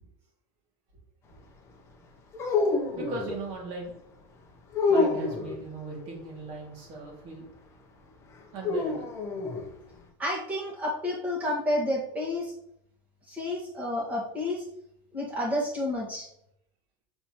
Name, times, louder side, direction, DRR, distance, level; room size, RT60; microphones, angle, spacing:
sound 1, 2.3-3.4 4.7-5.6 8.6-9.7, left 3 dB, 20° left, 0.8 m, -27 dB
voice 1, 2.7-4.0 4.9-7.5 8.5-9.1, right 2 dB, 45° right, -2 dB, 2.3 m, -38 dB
voice 2, 10.2-12.5 13.3-14.6 15.1-16.3, left 1 dB, 10° right, -4 dB, 1.6 m, -30 dB
7.9 x 4.3 x 3.0 m, 0.77 s
supercardioid pair, 165°, 13 cm